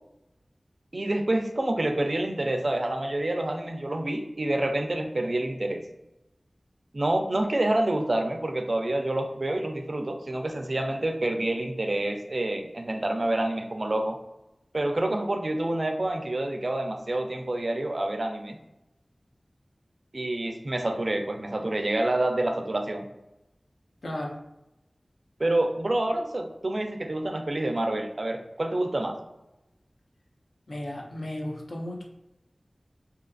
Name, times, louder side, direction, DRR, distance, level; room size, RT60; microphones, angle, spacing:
voice 1, 0.9-5.8 6.9-14.2 14.7-18.6 20.1-23.1 25.4-29.2, right 1 dB, 55° right, 5 dB, 0.3 m, -28 dB
voice 2, 24.0-24.3 30.7-32.0, left 1 dB, 75° left, -2 dB, 0.5 m, -34 dB
2.7 x 2.4 x 2.3 m, 0.93 s
wide cardioid pair, 50°, 0 cm